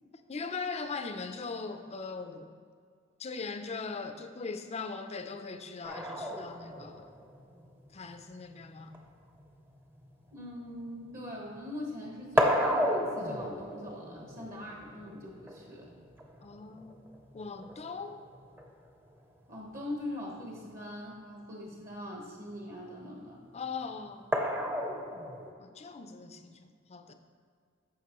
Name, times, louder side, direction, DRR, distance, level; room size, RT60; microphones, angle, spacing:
voice 1, 0.3-2.5 3.2-7.1 7.9-8.9 16.4-17.0 17.3-18.2 23.5-24.3 25.6-27.1, left 4 dB, 30° left, 7 dB, 0.5 m, -40 dB
sound 1, 5.8-11.6 11.8-18.9 20.3-20.4 20.7-20.8 24.3-25.5, equal, 10° right, 0.7 m, -34 dB
voice 2, 10.3-15.9 19.5-23.4, left 1 dB, 45° right, -2 dB, 1.2 m, -42 dB
14.0 x 5.2 x 3.0 m, 2.1 s
head